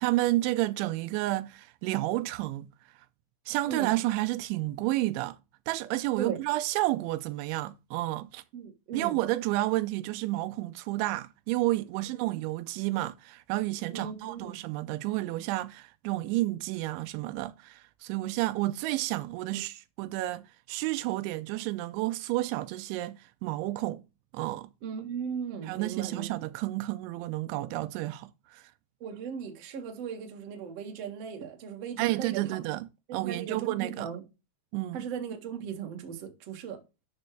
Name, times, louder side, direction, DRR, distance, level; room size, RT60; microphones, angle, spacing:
voice 1, 0.0-2.7 3.5-5.4 5.7-8.4 8.9-24.0 24.3-24.7 25.7-28.6 32.0-32.9 33.1-34.1 34.7-35.1, right 17 dB, 85° right, 3.0 m, -31 dB
voice 2, 8.5-9.2 13.9-14.6 19.5-19.6 24.8-26.3 29.0-32.4 33.1-34.2 34.9-36.8, right 7 dB, 50° right, 2.0 m, -37 dB
12.0 x 6.2 x 3.3 m
omnidirectional pair, 5.3 m